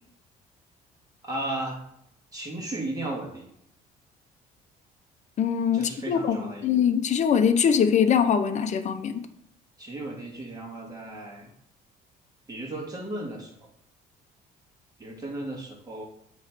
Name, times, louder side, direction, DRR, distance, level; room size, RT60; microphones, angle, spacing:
voice 1, 1.2-1.8 2.3-3.5 5.7-6.7 9.8-11.5 12.5-13.5 15.0-16.0, right 1 dB, 20° right, -1 dB, 2.1 m, -35 dB
voice 2, 5.4-6.4 6.6-9.3, left 7 dB, 45° left, 8 dB, 0.7 m, -22 dB
8.0 x 3.2 x 5.9 m, 0.75 s
cardioid pair, 110°, 17 cm